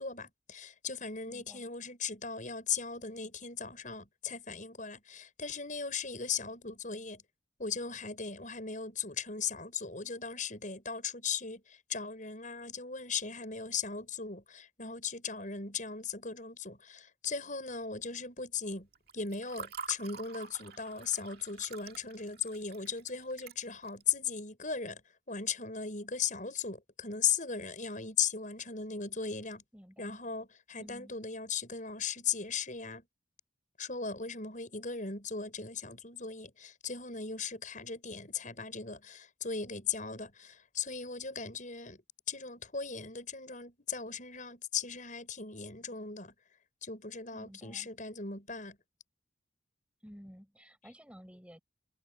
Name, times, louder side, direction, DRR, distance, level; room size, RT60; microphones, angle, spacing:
voice 1, 0.0-7.2 7.6-18.9 19.1-25.0 25.3-29.6 30.0-33.1 33.8-42.0 42.3-46.3 46.8-48.8, left 6 dB, 40° left, 7.0 m, -37 dB
voice 2, 1.3-1.6 29.7-30.2 30.8-31.1 47.3-47.9 50.0-51.6, equal, 5° right, 7.7 m, -53 dB
Water / Fill (with liquid), 18.9-24.1, right 5 dB, 55° right, 2.1 m, -47 dB
head